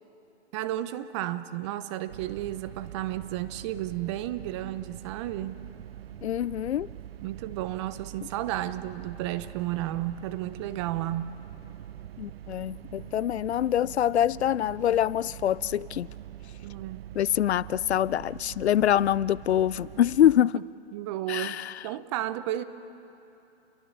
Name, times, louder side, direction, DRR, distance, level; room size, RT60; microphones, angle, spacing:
voice 1, 0.5-5.6 7.2-11.4 16.6-17.1 20.9-21.6 21.8-22.6, right 13 dB, 25° right, 0.7 m, -32 dB
sound 1, 2.1-20.4, right 12 dB, 60° right, 0.8 m, -44 dB
voice 2, 6.2-6.9 12.2-16.1 17.2-20.6 21.3-21.8, left 11 dB, 70° left, 0.5 m, -25 dB
29.0 x 22.0 x 7.4 m
hypercardioid pair, 135°, 34 cm